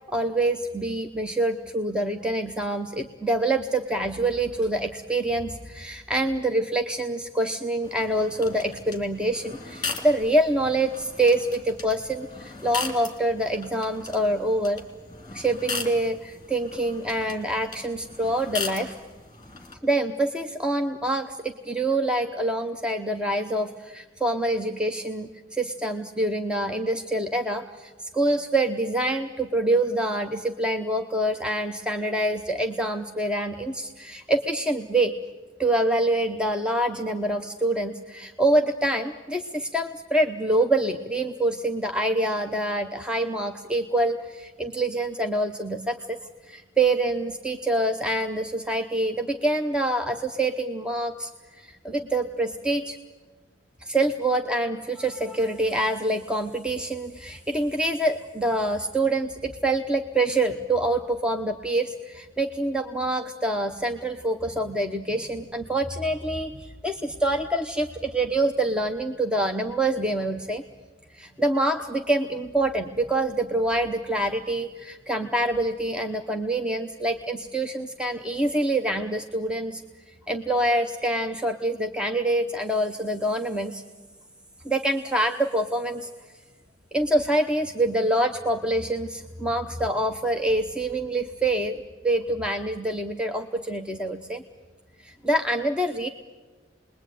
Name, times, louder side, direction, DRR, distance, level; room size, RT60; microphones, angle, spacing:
voice 1, 0.1-14.8 15.3-19.0 19.8-35.1 35.6-46.2 46.5-51.3 51.6-53.0 53.8-70.6 71.1-79.8 80.3-83.8 84.6-86.1 86.9-94.4 95.0-96.1, right 1 dB, 5° right, 4 dB, 0.8 m, -26 dB
sound 1, 7.8-19.8, left 4 dB, 20° left, 3.2 m, -38 dB
28.5 x 21.0 x 9.2 m, 1.3 s
head